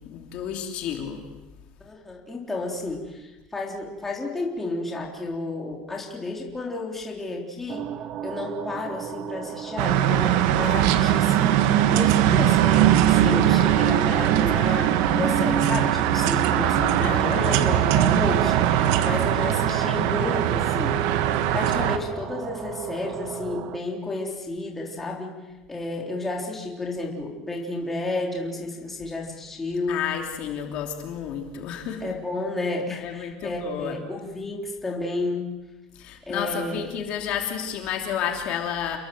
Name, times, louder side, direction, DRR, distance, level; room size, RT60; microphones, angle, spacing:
voice 1, 0.1-1.2 17.0-17.7 29.9-32.0 33.0-34.0 36.0-39.0, left 8 dB, 45° left, 3 dB, 3.1 m, -31 dB
voice 2, 1.8-7.9 8.2-21.0 21.5-25.4 25.7-30.0 32.0-35.5 36.3-36.9, left 2 dB, 10° left, -1 dB, 3.7 m, -31 dB
sound 1, 7.7-23.8, right 8 dB, 35° right, 1.2 m, -33 dB
sound 2, 9.8-22.0, right 11 dB, 70° right, 1.7 m, -21 dB
29.0 x 22.0 x 7.9 m, 1.1 s
cardioid pair, 175°, 3 cm